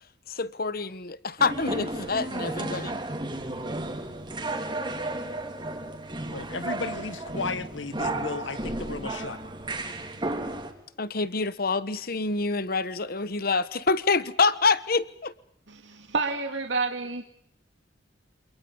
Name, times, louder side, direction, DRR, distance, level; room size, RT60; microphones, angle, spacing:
voice 1, 0.3-3.0 11.0-15.3, left 4 dB, 50° left, 1.3 m, -26 dB
sound 1, 1.4-10.7, right 2 dB, 25° right, 3.8 m, -33 dB
voice 2, 6.3-9.4, left 3 dB, 85° left, 1.7 m, -34 dB
voice 3, 15.7-17.2, right 4 dB, 75° right, 2.4 m, -29 dB
28.0 x 27.5 x 5.5 m
head